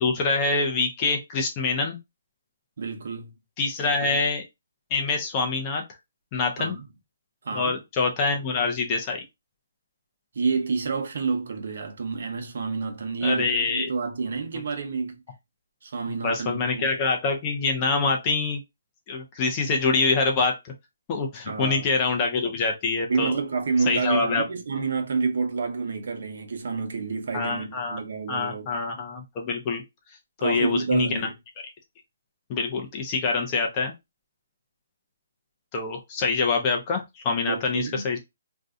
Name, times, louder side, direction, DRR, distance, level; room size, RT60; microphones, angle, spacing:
voice 1, 0.0-2.0 3.6-4.4 4.9-5.8 6.3-6.8 7.5-9.2 13.2-13.9 16.2-18.6 19.1-20.7 21.1-23.3 23.9-24.4 27.3-28.0 28.3-29.8 30.4-31.3 32.5-33.9 35.7-38.2, left 4 dB, 20° left, 0.6 m, -25 dB
voice 2, 2.8-3.3 4.0-4.2 6.6-6.9 7.4-7.7 10.3-15.2 15.8-16.9 21.5-21.9 23.1-28.7 30.4-31.3 37.5-38.1, right 4 dB, 60° right, 0.8 m, -28 dB
2.6 x 2.2 x 3.6 m
hypercardioid pair, 170°, 0 cm